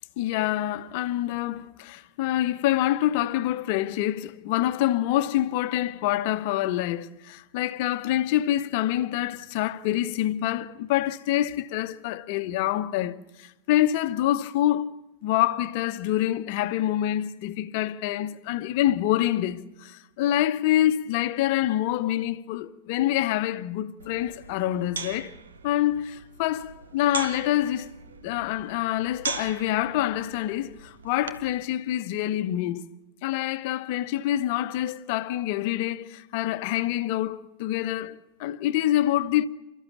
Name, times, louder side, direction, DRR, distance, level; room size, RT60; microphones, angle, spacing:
voice 1, 0.2-25.3 25.6-27.9 28.2-32.8 33.2-39.5, left 13 dB, 50° left, 1.0 m, -26 dB
sound 1, 24.0-31.6, right 5 dB, 70° right, 1.4 m, -39 dB
29.5 x 14.0 x 7.2 m
figure-of-eight pair, 95°, 0 cm